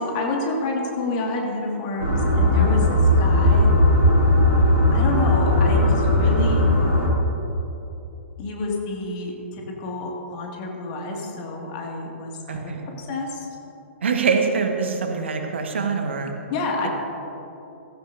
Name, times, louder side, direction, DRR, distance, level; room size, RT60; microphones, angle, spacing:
voice 1, 0.0-3.7 4.9-6.7 8.4-13.5 16.5-16.9, left 2 dB, 40° left, 0 dB, 2.1 m, -29 dB
sound 1, 2.0-7.1, left 1 dB, 85° left, 3.2 m, -18 dB
voice 2, 12.5-12.9 14.0-16.3, right 5 dB, 60° right, 4 dB, 1.5 m, -24 dB
16.0 x 14.5 x 2.7 m, 3.0 s
figure-of-eight pair, 115°, 7 cm